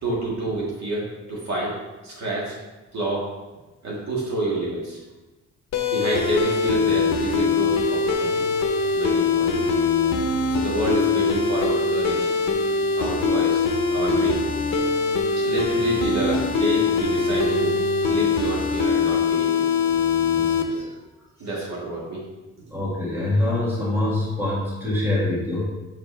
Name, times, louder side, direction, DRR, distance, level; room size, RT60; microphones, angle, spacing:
voice 1, 0.0-1.7 2.0-2.6 2.9-3.3 3.8-5.0 5.9-8.5 8.9-9.6 10.5-12.3 13.0-13.6 13.9-14.4 15.4-17.8 18.1-19.6 20.7-21.0 21.4-22.2, right 2 dB, 60° right, -5 dB, 2.1 m, -28 dB
sound 1, 5.7-20.6, left 4 dB, 60° left, 0.8 m, -22 dB
voice 2, 20.3-20.9 21.5-21.6 22.7-25.7, left 1 dB, 5° right, -7 dB, 2.0 m, -25 dB
7.3 x 5.1 x 3.4 m, 1.1 s
cardioid pair, 145°, 31 cm